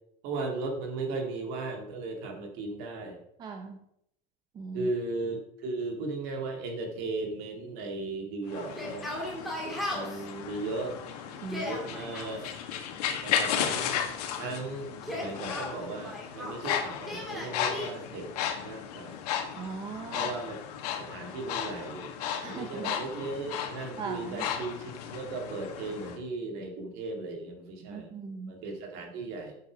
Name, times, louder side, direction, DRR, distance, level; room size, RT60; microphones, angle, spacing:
voice 1, 0.2-3.2 4.7-9.1 9.9-11.0 11.6-12.5 13.2-14.0 14.3-18.3 18.6-19.2 20.1-20.6 21.0-22.1 22.4-28.1 28.5-29.6, right 3 dB, 55° right, 3 dB, 2.3 m, -36 dB
voice 2, 3.4-3.8 4.5-4.9 11.4-11.7 19.5-20.3 22.4-23.0 24.0-24.5 27.8-28.5, right 5 dB, 20° right, 4 dB, 0.7 m, -39 dB
sound 1, 8.5-26.2, left 9 dB, 90° left, 1.5 m, -35 dB
Yell, 8.7-10.2 11.3-12.3 14.9-16.6 17.1-17.9, left 1 dB, ahead, 2.2 m, -37 dB
8.7 x 6.9 x 5.1 m, 0.76 s
cardioid pair, 165°, 19 cm